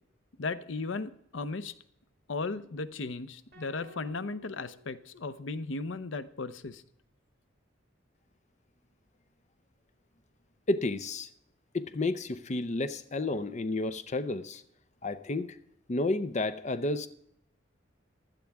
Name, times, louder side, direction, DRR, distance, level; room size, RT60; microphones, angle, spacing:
voice 1, 0.4-1.7 2.3-6.8, left 3 dB, 80° left, 14 dB, 0.7 m, -36 dB
sound 1, 3.5-5.8, equal, 55° right, 5.6 m, -56 dB
voice 2, 10.7-11.3 11.7-14.6 15.0-15.6 15.9-17.1, left 2 dB, 40° left, 11 dB, 0.6 m, -31 dB
16.0 x 12.0 x 3.5 m, 0.72 s
head